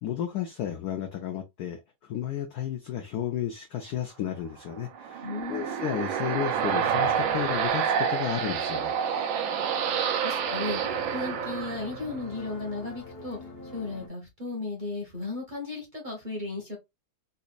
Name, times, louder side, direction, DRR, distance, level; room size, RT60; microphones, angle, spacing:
voice 1, 0.0-9.0, left 10 dB, 75° left, 0.9 m, -33 dB
sound 1, 4.8-12.3, right 7 dB, 75° right, 1.4 m, -28 dB
voice 2, 5.2-5.8 9.8-10.8 11.1-13.4 13.7-16.8, left 3 dB, 35° right, 0.9 m, -35 dB
sound 2, 5.5-14.1, left 2 dB, 50° left, 0.7 m, -44 dB
4.1 x 2.5 x 2.4 m
omnidirectional pair, 2.3 m